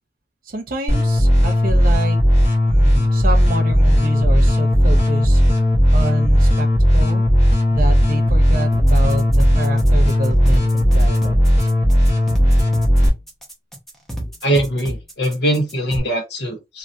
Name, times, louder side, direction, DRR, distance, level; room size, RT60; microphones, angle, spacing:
voice 1, 0.5-2.2 2.7-5.4 5.9-6.7 6.9-7.2 7.7-11.4, right 2 dB, 50° right, 0.8 m, -28 dB
sound 1, 0.9-13.1, equal, 35° left, 1.2 m, -15 dB
sound 2, 8.7-16.0, equal, ahead, 0.8 m, -31 dB
voice 2, 14.4-16.8, right 1 dB, 65° left, 1.2 m, -21 dB
2.8 x 2.8 x 2.6 m
head